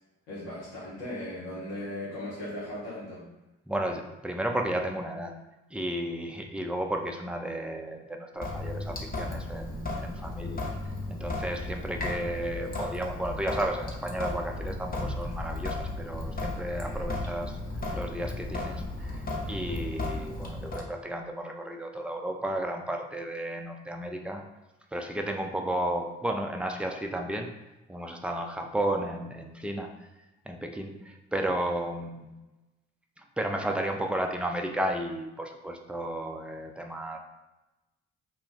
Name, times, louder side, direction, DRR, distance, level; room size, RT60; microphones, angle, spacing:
voice 1, 0.3-3.3 16.8-17.0, left 1 dB, 90° left, -8 dB, 0.8 m, -38 dB
voice 2, 3.7-5.3 5.7-10.6 11.1-17.6 17.9-19.2 19.5-24.4 24.9-27.5 27.9-29.9 30.5-32.3 33.4-37.2, right 1 dB, 5° right, 3 dB, 0.4 m, -33 dB
Sink (filling or washing) / Drip, 8.4-20.8, left 2 dB, 25° left, 0.8 m, -35 dB
2.3 x 2.2 x 3.8 m, 1.0 s
hypercardioid pair, 40°, 34 cm